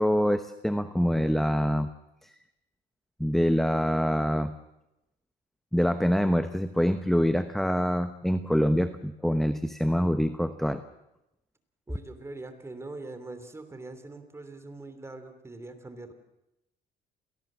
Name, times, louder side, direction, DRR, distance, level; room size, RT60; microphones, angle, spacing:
voice 1, 0.0-1.9 2.2-2.3 3.2-4.5 5.7-10.8, equal, ahead, 10 dB, 1.0 m, -25 dB
voice 2, 11.9-16.1, right 2 dB, 15° right, 9 dB, 3.0 m, -42 dB
28.0 x 18.5 x 7.5 m, 0.90 s
cardioid pair, 110°, 17 cm